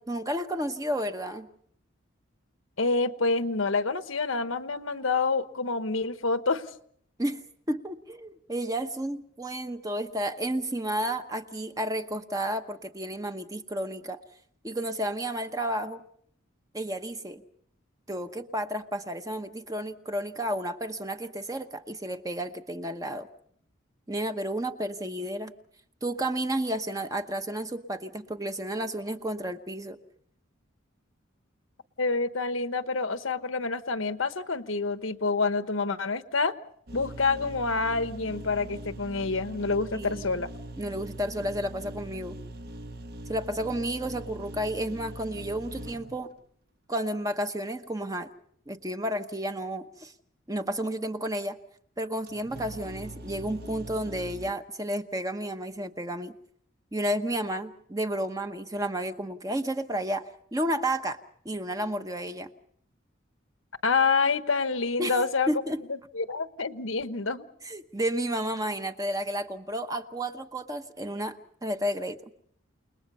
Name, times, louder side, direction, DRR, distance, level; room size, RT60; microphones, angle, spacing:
voice 1, 0.0-1.5 7.2-7.4 7.7-14.2 14.6-16.0 16.7-17.4 18.1-23.3 24.1-25.5 26.0-30.0 39.9-40.4 40.8-42.4 43.3-46.3 46.9-48.3 48.7-50.1 50.5-51.6 52.0-56.3 56.9-61.2 61.4-62.5 65.0-65.2 65.5-65.8 67.6-72.2, right 1 dB, 15° right, 8 dB, 1.0 m, -32 dB
voice 2, 2.8-6.6 32.0-36.5 36.9-40.5 63.8-65.5 66.1-67.5, left 4 dB, 85° left, 11 dB, 1.1 m, -27 dB
sound 1, 36.9-46.4 52.3-54.5, right 1 dB, 50° right, 1.1 m, -42 dB
29.5 x 20.0 x 5.5 m, 0.65 s
head